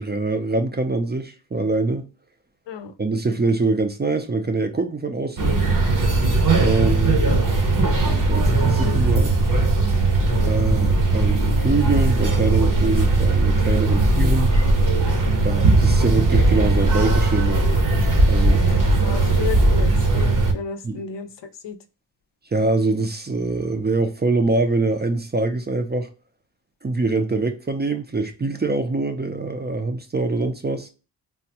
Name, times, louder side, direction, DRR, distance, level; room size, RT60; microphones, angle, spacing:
voice 1, 0.0-2.1 3.0-5.6 6.5-7.5 8.0-9.4 10.4-14.6 15.4-17.7 18.3-18.7 20.8-21.0 22.5-26.1 26.8-30.9, right 3 dB, 25° right, 0.4 m, -24 dB
sound 1, 5.4-20.5, right 2 dB, 50° right, 0.7 m, -18 dB
voice 2, 18.6-21.8, left 6 dB, 85° left, 0.5 m, -33 dB
3.4 x 2.0 x 2.7 m
wide cardioid pair, 95°, 42 cm